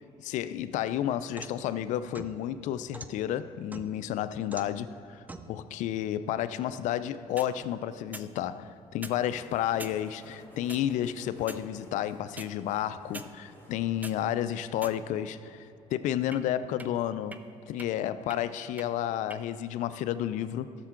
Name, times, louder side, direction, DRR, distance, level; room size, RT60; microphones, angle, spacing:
voice 1, 0.2-17.4 17.7-20.8, left 11 dB, 70° left, 0.4 m, -31 dB
sound 1, 0.7-1.6 2.1-3.1 3.7-4.1 4.5-4.8 5.3-5.5 7.2-7.5 8.1-8.3 8.9-9.2 9.8-10.0 10.7-10.8 11.4-11.7 12.4-12.5 13.1-13.3 13.8-14.2 14.8-15.3 16.3-16.4 16.8-16.9 17.3-17.4 17.8-17.9 18.3-18.4 18.8-18.9 19.3-19.4, right 2 dB, 10° right, 0.4 m, -43 dB
sound 2, 9.2-15.1, left 1 dB, 15° left, 1.9 m, -55 dB
13.0 x 6.7 x 3.7 m
cardioid pair, 95°, 13 cm